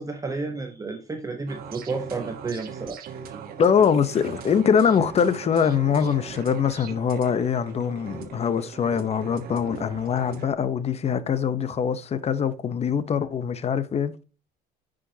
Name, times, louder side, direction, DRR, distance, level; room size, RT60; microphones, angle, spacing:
voice 1, 0.0-3.0, right 3 dB, 20° right, 0.9 m, -31 dB
sound 1, 1.5-10.5, right 7 dB, 60° right, 1.3 m, -40 dB
voice 2, 3.6-14.1, left 7 dB, 40° left, 0.8 m, -23 dB
9.8 x 5.1 x 2.8 m
cardioid pair, 110°, 17 cm